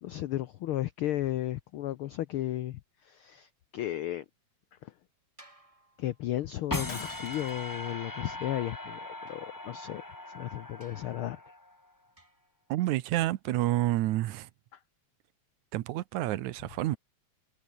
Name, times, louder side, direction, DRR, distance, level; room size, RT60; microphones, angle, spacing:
voice 1, 0.0-4.2 4.8-4.9 6.0-11.4, left 13 dB, 85° left, 1.2 m, -34 dB
sound 1, 5.4-6.8 9.3-10.2 10.8-11.3 12.2-12.6, right 2 dB, 10° right, 2.5 m, -61 dB
sound 2, 6.7-11.9, left 2 dB, 30° left, 0.3 m, -39 dB
Shatter, 6.9-7.7, left 5 dB, 45° left, 4.1 m, -45 dB
voice 2, 12.7-14.5 15.7-17.0, right 15 dB, 85° right, 2.3 m, -29 dB
omnidirectional pair, 3.3 m